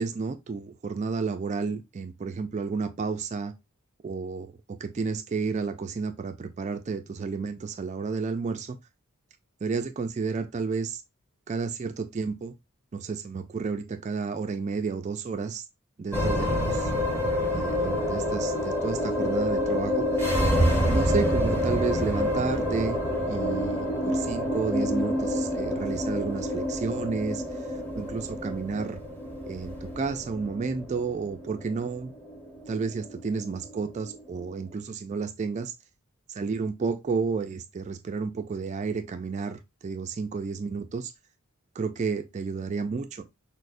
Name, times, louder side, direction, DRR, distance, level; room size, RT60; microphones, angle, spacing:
voice 1, 0.0-3.5 4.0-4.5 4.8-8.8 9.6-11.0 11.5-12.5 12.9-15.6 16.0-16.9 17.5-20.1 20.9-23.0 23.3-29.0 29.4-32.1 32.7-35.7 36.3-41.1 41.8-43.2, right 4 dB, 30° right, 0.3 m, -31 dB
sound 1, 16.1-34.6, equal, 10° left, 0.9 m, -28 dB
6.1 x 2.1 x 2.4 m
head